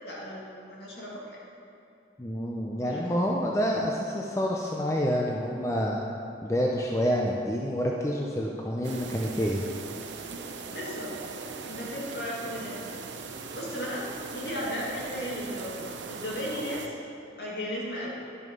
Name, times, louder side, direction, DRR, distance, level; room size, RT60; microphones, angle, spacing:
voice 1, 0.0-1.4 2.8-3.2 10.7-11.1 11.4-13.0 13.5-16.9 17.4-18.1, equal, 60° left, -5 dB, 2.3 m, -36 dB
voice 2, 2.2-6.0 6.4-9.7, equal, 15° left, -1 dB, 0.6 m, -28 dB
sound 1, 8.8-16.9, right 4 dB, 85° right, 0.7 m, -40 dB
11.0 x 6.4 x 5.3 m, 2.7 s
head